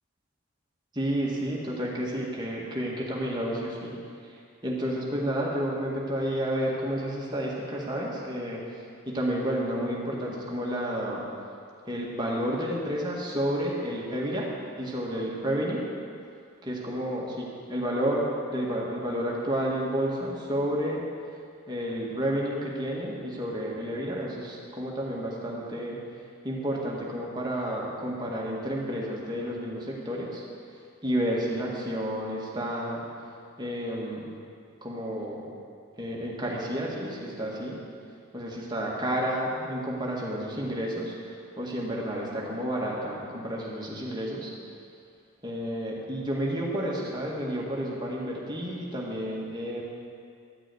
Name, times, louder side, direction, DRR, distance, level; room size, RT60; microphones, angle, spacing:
voice 1, 0.9-4.0 4.2-11.2 11.9-14.5 14.8-15.9 16.6-18.2 18.5-21.0 21.7-26.0 26.4-30.4 31.0-33.0 33.6-34.3 34.8-35.5 36.0-37.8 38.3-44.5 45.4-49.8, equal, 20° right, -4 dB, 1.9 m, -31 dB
13.0 x 6.2 x 9.2 m, 2.3 s
head